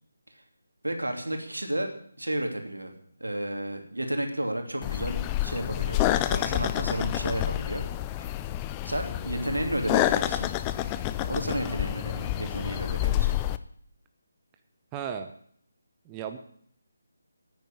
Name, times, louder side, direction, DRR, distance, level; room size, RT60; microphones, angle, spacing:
voice 1, 0.8-1.9 2.2-2.9 3.2-7.8 8.8-10.5 11.3-13.5, right 1 dB, 85° right, 4 dB, 3.0 m, -32 dB
sound 1, 4.8-13.6, left 13 dB, 20° left, 0.5 m, -28 dB
voice 2, 14.9-15.3 16.1-16.4, right 8 dB, 15° right, 7 dB, 0.9 m, -34 dB
10.5 x 9.3 x 9.0 m, 0.63 s
figure-of-eight pair, 150°, 0 cm